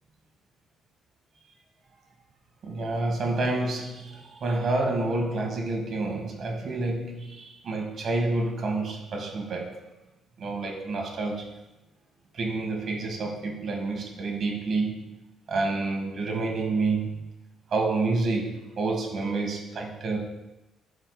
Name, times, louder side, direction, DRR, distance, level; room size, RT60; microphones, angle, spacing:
voice 1, 2.6-9.9 10.4-11.5 12.3-15.1 15.5-17.2 17.7-20.2, right 3 dB, 60° right, 1 dB, 1.7 m, -28 dB
13.5 x 5.1 x 2.3 m, 0.96 s
cardioid pair, 90°, 0 cm